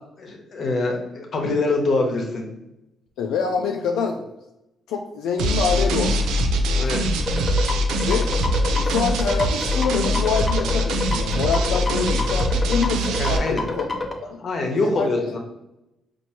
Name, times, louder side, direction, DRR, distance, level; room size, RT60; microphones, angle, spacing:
voice 1, 0.2-2.5 6.8-7.1 13.2-13.6 14.4-15.4, left 2 dB, 55° left, 3 dB, 0.9 m, -24 dB
voice 2, 3.2-4.3 4.9-6.3 8.0-8.3 8.7-13.9 14.2-14.4 14.8-15.4, left 5 dB, 90° left, 3 dB, 0.3 m, -26 dB
sound 1, 5.4-13.4, equal, 90° right, 0.4 m, -22 dB
sound 2, 7.3-14.1, left 3 dB, 20° left, 0.6 m, -28 dB
4.5 x 2.5 x 2.9 m, 0.88 s
cardioid pair, 90°, 0 cm